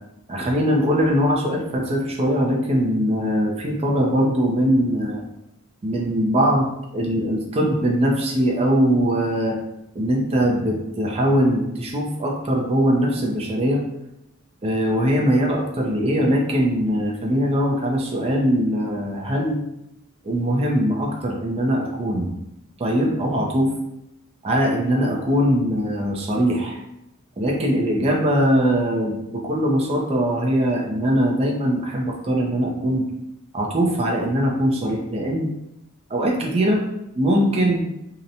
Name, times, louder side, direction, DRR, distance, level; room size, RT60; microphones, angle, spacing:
voice 1, 0.3-5.2 5.8-9.6 9.9-13.8 14.6-19.6 20.2-22.3 22.8-23.7 24.4-26.8 27.4-33.0 33.5-35.5 36.1-36.8 37.1-37.9, equal, 25° right, -1 dB, 0.4 m, -21 dB
2.8 x 2.1 x 2.5 m, 0.85 s
head